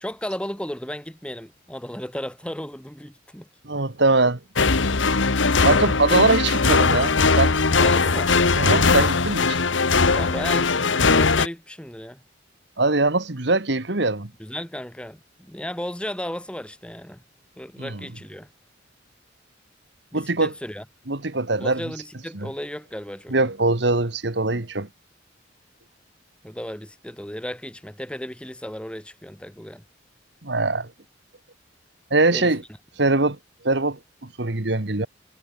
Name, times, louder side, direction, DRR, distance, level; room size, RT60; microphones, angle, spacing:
voice 1, 0.0-3.5 7.8-8.3 10.1-12.2 14.4-17.2 17.6-18.5 20.1-20.8 21.6-23.5 26.4-29.8 32.3-32.5, equal, 5° left, 1.3 m, -34 dB
voice 2, 3.6-4.4 5.6-7.6 8.6-9.6 12.8-14.3 17.8-18.1 20.1-20.5 21.1-21.8 22.3-22.5 23.3-24.9 30.4-30.9 32.1-32.6 33.0-33.4 33.6-35.1, right 2 dB, 60° right, 1.7 m, -22 dB
sound 1, 4.6-11.5, left 4 dB, 75° left, 1.3 m, -19 dB
head